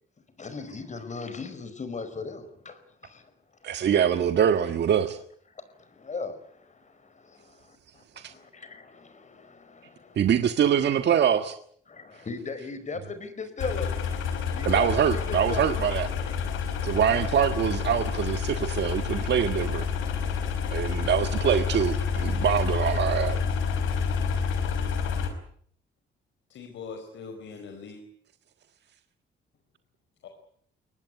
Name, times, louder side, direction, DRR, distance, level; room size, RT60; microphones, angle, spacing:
voice 1, 0.4-3.3 5.5-10.4 11.9-13.9 14.5-15.7, left 4 dB, 35° left, 12 dB, 5.1 m, -38 dB
voice 2, 3.6-5.2 10.1-11.5 14.6-16.1 16.8-19.8 20.7-23.4, right 8 dB, 60° right, 8 dB, 1.6 m, -24 dB
sound 1, 13.6-25.3, left 6 dB, 90° left, 5.1 m, -29 dB
voice 3, 26.5-28.0 30.2-30.3, left 5 dB, 70° left, 5 dB, 4.7 m, -41 dB
23.0 x 19.0 x 9.6 m, 0.63 s
cardioid pair, 90°, 20 cm